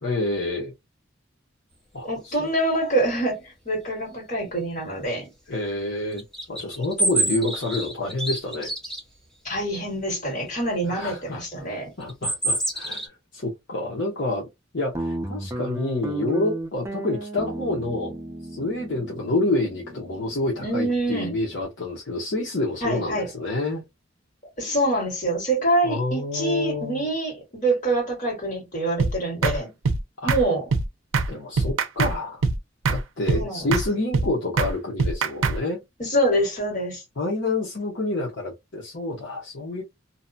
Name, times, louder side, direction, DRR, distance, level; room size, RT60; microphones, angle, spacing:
voice 1, 0.0-0.7 1.9-2.5 2.8-2.9 5.5-6.2 6.5-8.7 10.8-11.6 12.0-14.5 14.7-18.2 18.5-23.8 25.8-27.1 30.2-30.3 31.3-32.4 32.9-35.8 37.2-39.8, left 2 dB, 60° left, 0.8 m, -28 dB
voice 2, 2.0-5.3 9.4-11.9 20.6-21.3 22.8-23.3 24.6-29.7 30.2-30.7 33.3-33.8 36.0-37.0, right 1 dB, 40° left, 1.8 m, -25 dB
sound 1, 6.1-9.0 12.0-13.1, right 2 dB, ahead, 0.8 m, -26 dB
Guitar, 14.9-21.6, right 1 dB, 15° right, 0.4 m, -34 dB
sound 2, 29.0-29.1 29.4-29.6 29.8-30.0 30.3-30.4 30.7-30.8 31.1-31.3 31.6-32.1 32.4-32.6 32.9-33.0 33.3-33.4 33.7-33.9 34.1-34.3 34.6-34.7 35.0-35.6, right 4 dB, 80° right, 0.5 m, -22 dB
2.8 x 2.2 x 2.6 m
head